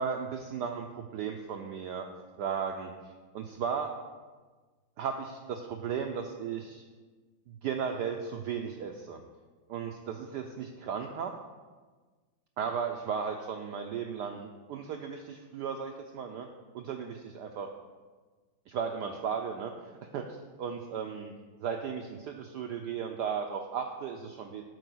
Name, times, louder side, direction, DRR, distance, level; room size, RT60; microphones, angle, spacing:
voice 1, 0.0-2.1 2.4-2.9 3.3-3.9 5.0-6.8 7.6-9.2 9.7-11.3 12.6-16.5 16.7-17.7 18.7-20.3 20.6-21.3 21.6-24.6, right 6 dB, 80° right, 4 dB, 0.9 m, -35 dB
7.8 x 4.7 x 6.1 m, 1.4 s
omnidirectional pair, 2.3 m